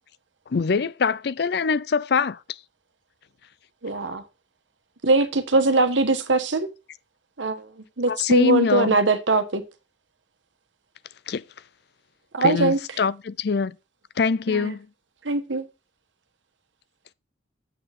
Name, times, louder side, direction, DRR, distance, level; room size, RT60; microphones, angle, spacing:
voice 1, 0.5-2.4 8.1-9.0 11.3-11.4 12.4-13.8 14.2-14.9, left 5 dB, 60° left, 0.5 m, -23 dB
voice 2, 3.8-4.2 5.0-6.7 7.4-7.6 8.0-9.6 12.3-12.8 14.5-14.7 15.2-15.6, right 3 dB, 85° right, 1.3 m, -21 dB
7.7 x 6.6 x 4.2 m
head